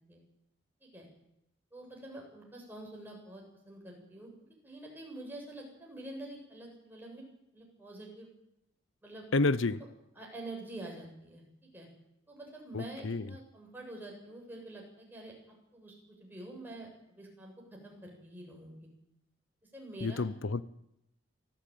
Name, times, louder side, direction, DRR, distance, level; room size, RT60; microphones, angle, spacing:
voice 1, 1.7-4.3 4.6-7.2 7.5-8.3 9.0-9.3 9.8-9.9 10.1-11.4 11.7-11.9 12.3-15.3 15.7-18.9 19.7-20.3, right 1 dB, 10° right, 7.5 m, -47 dB
voice 2, 9.3-9.8 12.7-13.2 20.0-20.6, left 3 dB, 90° left, 0.8 m, -29 dB
24.5 x 15.5 x 9.3 m
head